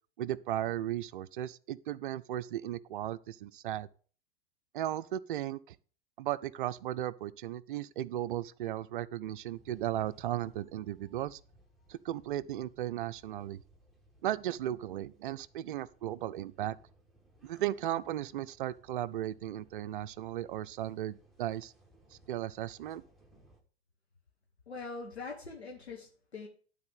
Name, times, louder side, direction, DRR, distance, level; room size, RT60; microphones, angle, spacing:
voice 1, 0.2-3.9 4.7-5.8 6.2-11.4 11.9-13.6 14.2-16.8 17.4-21.7 22.1-23.0, right 12 dB, 55° right, 0.5 m, -36 dB
sound 1, 9.5-23.6, right 1 dB, ahead, 1.5 m, -63 dB
voice 2, 24.7-26.5, left 4 dB, 80° left, 1.4 m, -43 dB
12.0 x 4.1 x 5.2 m
figure-of-eight pair, 95°, 32 cm